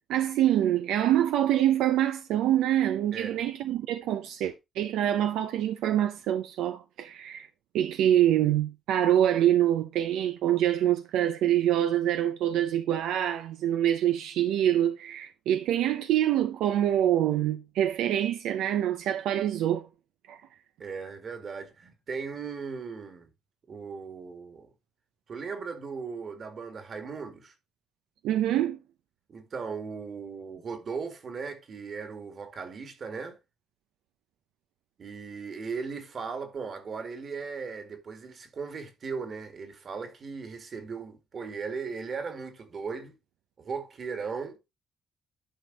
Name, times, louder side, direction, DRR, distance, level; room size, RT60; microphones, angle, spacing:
voice 1, 0.1-7.5 7.7-19.9 20.3-20.4 28.2-28.8, right 11 dB, 90° right, 0.6 m, -25 dB
voice 2, 3.1-3.4 20.8-23.3 23.7-24.7 25.3-27.5 29.3-33.4 35.0-43.1 43.6-44.6, right 5 dB, 50° right, 2.1 m, -37 dB
11.5 x 4.3 x 4.1 m
cardioid pair, 90°, 0 cm